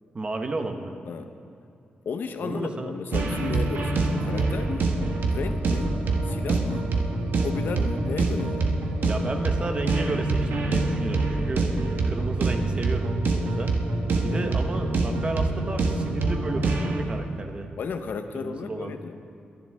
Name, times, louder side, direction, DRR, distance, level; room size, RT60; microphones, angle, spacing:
voice 1, 0.1-0.9 2.4-2.9 9.1-11.7 12.0-13.7 14.2-17.7 18.3-19.0, right 2 dB, 35° right, 5 dB, 1.2 m, -32 dB
voice 2, 2.0-4.9 5.3-5.9 6.2-6.9 7.4-8.7 14.3-14.5 17.8-19.2, left 5 dB, 70° left, 8 dB, 0.9 m, -34 dB
sound 1, 3.1-17.0, right 3 dB, 75° right, 1.4 m, -25 dB
22.0 x 11.0 x 3.6 m, 2.5 s
wide cardioid pair, 115°, 3 cm